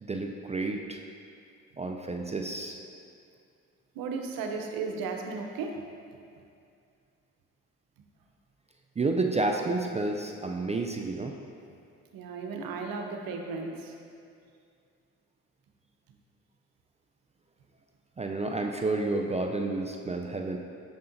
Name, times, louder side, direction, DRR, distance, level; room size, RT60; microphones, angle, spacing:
voice 1, 0.0-1.0 1.8-2.8 9.0-11.3 18.2-20.6, right 3 dB, 20° right, 2 dB, 0.4 m, -30 dB
voice 2, 3.9-5.8 12.1-13.9, right 4 dB, 70° right, 3 dB, 0.7 m, -35 dB
6.8 x 5.5 x 2.6 m, 2.4 s
hypercardioid pair, 50°, 36 cm